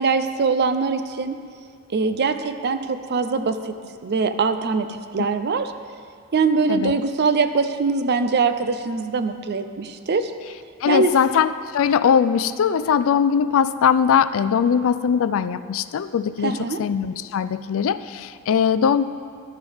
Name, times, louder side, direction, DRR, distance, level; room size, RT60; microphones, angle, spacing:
voice 1, 0.0-1.4 1.9-3.7 4.0-5.7 6.3-10.3 10.9-11.1 16.4-16.8, right 4 dB, 50° right, 9 dB, 0.5 m, -22 dB
voice 2, 10.8-19.0, left 7 dB, 65° left, 14 dB, 0.3 m, -20 dB
12.0 x 9.7 x 3.5 m, 2.2 s
head